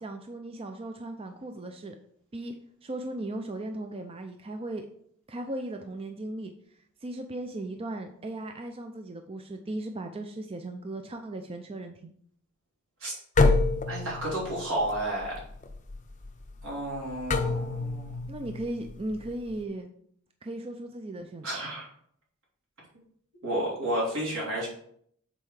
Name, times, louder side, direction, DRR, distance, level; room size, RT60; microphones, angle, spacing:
voice 1, 0.0-2.0 2.3-2.5 2.8-4.9 5.3-6.5 7.0-12.1 18.3-19.9 20.4-21.5, right 1 dB, 25° right, 5 dB, 0.5 m, -37 dB
sound 1, 13.4-19.6, left 3 dB, 35° left, 0.6 m, -28 dB
voice 2, 13.9-15.4 16.6-18.2 21.4-21.9 23.4-24.7, right 1 dB, 80° right, -4 dB, 3.2 m, -31 dB
7.6 x 4.3 x 4.8 m, 0.66 s
head